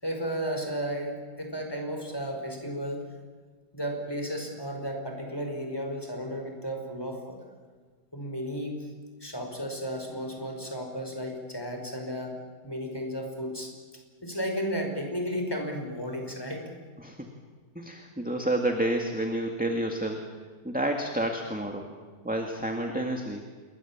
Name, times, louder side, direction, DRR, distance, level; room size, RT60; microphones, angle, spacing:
voice 1, 0.0-3.0 3.7-7.4 8.1-8.9 9.2-12.4 12.6-13.7 14.2-16.7, equal, 15° left, 3 dB, 4.9 m, -33 dB
voice 2, 17.0-17.3 17.8-20.3 20.6-21.9 22.2-23.4, right 1 dB, 5° right, 3 dB, 1.9 m, -29 dB
27.5 x 22.0 x 7.3 m, 1.6 s
omnidirectional pair, 1.8 m